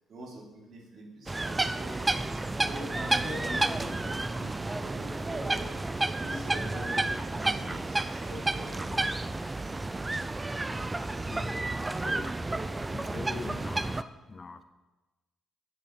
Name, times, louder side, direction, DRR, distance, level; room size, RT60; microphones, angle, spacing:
voice 1, 0.1-2.0 2.3-5.7 6.2-9.0, right 1 dB, 55° right, -1 dB, 3.3 m, -43 dB
sound 1, 1.3-14.0, right 2 dB, 20° right, 0.5 m, -31 dB
voice 2, 10.7-12.3 12.9-14.6, left 4 dB, 35° left, 10 dB, 0.7 m, -43 dB
9.2 x 6.6 x 7.3 m, 1.1 s
cardioid pair, 90°, 0 cm